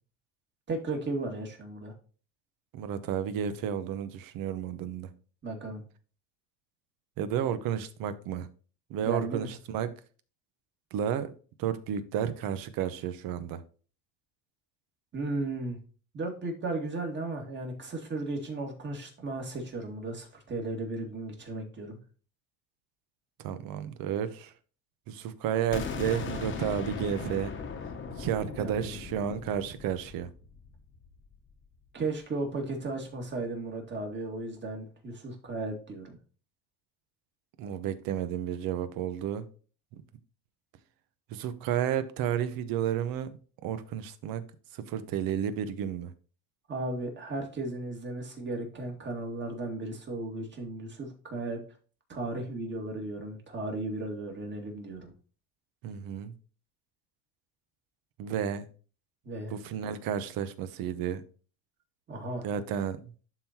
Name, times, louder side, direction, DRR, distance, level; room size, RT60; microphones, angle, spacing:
voice 1, 0.7-1.9 5.4-5.8 9.0-9.5 15.1-15.8 16.1-22.0 28.4-29.0 31.9-36.2 46.7-51.6 52.1-55.1 59.2-59.5 62.1-62.5, right 2 dB, 30° right, 2.1 m, -35 dB
voice 2, 2.7-5.1 7.2-8.5 8.9-9.9 10.9-11.3 11.6-13.6 23.4-24.5 25.1-27.5 28.2-30.3 37.6-39.4 39.9-40.0 41.3-44.4 44.7-46.1 55.8-56.3 58.2-58.7 59.5-61.2 62.4-63.0, right 9 dB, 65° right, 1.0 m, -32 dB
sound 1, 25.7-31.5, left 5 dB, 30° left, 1.1 m, -39 dB
11.5 x 3.9 x 2.8 m
cardioid pair, 125°, 37 cm